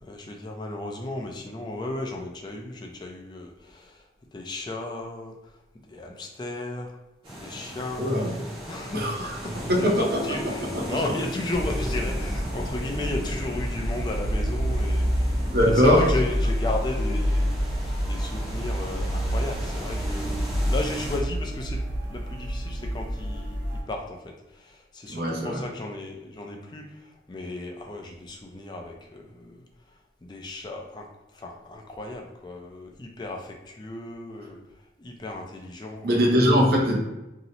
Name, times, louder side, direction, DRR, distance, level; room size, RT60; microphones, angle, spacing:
voice 1, 0.0-4.1 4.3-5.5 5.8-7.0 7.4-8.2 8.7-17.7 18.1-29.6 30.2-34.6 35.0-36.2, left 2 dB, 25° left, 1 dB, 0.3 m, -35 dB
sound 1, 7.2-21.2, equal, 30° right, 0.8 m, -38 dB
voice 2, 8.0-8.3 8.9-11.0 15.4-16.1 25.1-25.6 36.0-37.0, equal, 55° right, -1 dB, 0.6 m, -22 dB
sound 2, 11.5-23.8, equal, 75° right, 1.2 m, -28 dB
2.8 x 2.0 x 3.9 m, 1.0 s
head